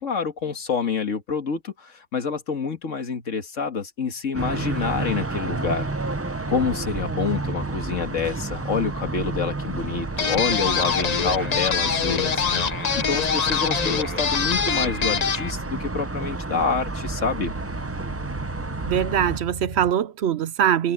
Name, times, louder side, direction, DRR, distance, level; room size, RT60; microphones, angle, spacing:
voice 1, 0.0-5.9 6.5-12.4 13.1-17.5, left 5 dB, 85° left, 2.1 m, -27 dB
sound 1, 4.3-19.4, right 3 dB, 20° right, 0.4 m, -31 dB
sound 2, 4.9-19.9, right 1 dB, 40° right, 5.9 m, -41 dB
sound 3, 10.2-15.5, left 6 dB, 40° left, 0.7 m, -24 dB
voice 2, 18.9-20.9, right 9 dB, 65° right, 0.8 m, -22 dB
omnidirectional pair, 1.3 m